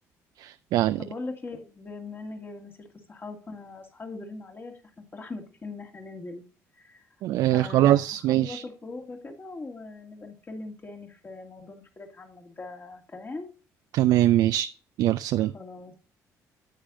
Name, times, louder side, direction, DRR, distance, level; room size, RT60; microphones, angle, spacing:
voice 1, 0.4-1.0 7.2-8.6 13.9-14.7 15.0-15.5, right 14 dB, 75° right, 0.4 m, -22 dB
voice 2, 1.0-4.8 5.1-6.4 6.8-7.1 7.5-13.5 15.4-15.9, left 3 dB, 30° left, 2.3 m, -41 dB
9.9 x 8.0 x 2.6 m
cardioid pair, 85°, 7 cm